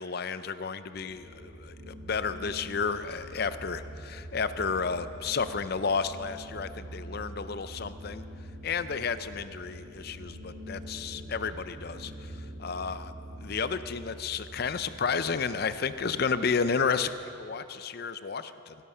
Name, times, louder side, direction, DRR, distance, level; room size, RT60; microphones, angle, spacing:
voice 1, 0.0-8.2 8.6-12.3 12.6-13.1 13.4-18.8, left 5 dB, 50° left, 13 dB, 0.5 m, -32 dB
sound 1, 0.9-17.1, equal, 45° right, 1.7 m, -45 dB
17.0 x 12.5 x 5.5 m, 2.8 s
head